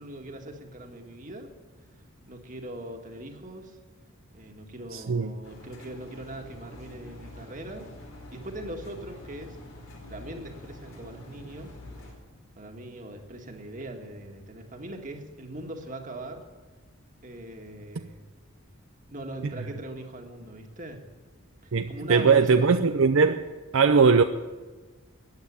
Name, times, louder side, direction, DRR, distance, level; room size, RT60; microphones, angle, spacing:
voice 1, 0.0-1.5 2.3-3.8 4.3-7.9 8.3-9.6 10.1-11.8 12.6-16.5 17.2-18.2 19.1-21.1 21.6-22.6, right 1 dB, 35° right, 1.8 m, -40 dB
voice 2, 4.9-5.3 21.7-23.4 23.7-24.2, right 5 dB, 65° right, 0.6 m, -20 dB
Engine, 5.4-12.1, left 1 dB, 80° left, 4.2 m, -46 dB
14.5 x 9.5 x 10.0 m
head